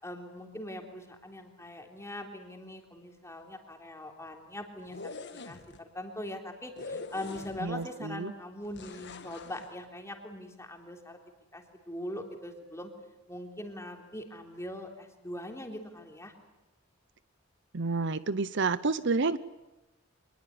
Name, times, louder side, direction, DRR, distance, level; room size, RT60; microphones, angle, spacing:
voice 1, 0.0-11.2 11.5-12.9 13.3-16.3, left 1 dB, 15° left, 2 dB, 3.5 m, -42 dB
sound 1, 4.8-5.8 6.8-7.8 8.7-9.7, left 3 dB, 55° left, 1.7 m, -43 dB
voice 2, 7.6-8.3 17.7-19.4, right 4 dB, 60° right, 15 dB, 0.8 m, -29 dB
25.0 x 21.0 x 9.7 m, 1.0 s
head